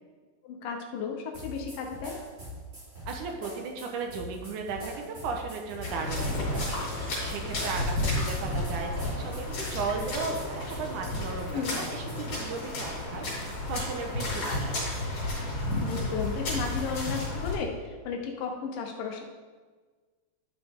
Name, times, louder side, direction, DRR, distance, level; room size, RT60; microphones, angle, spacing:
voice 1, 0.4-2.2 11.5-11.8 15.8-19.2, left 6 dB, 85° left, 2 dB, 2.6 m, -34 dB
sound 1, 1.3-12.4, equal, 20° right, 2.6 m, -42 dB
voice 2, 3.1-14.8, right 4 dB, 75° right, 3 dB, 2.3 m, -36 dB
sound 2, 5.8-17.5, left 1 dB, 55° left, 4.2 m, -32 dB
11.5 x 6.0 x 3.6 m, 1.4 s
omnidirectional pair, 3.8 m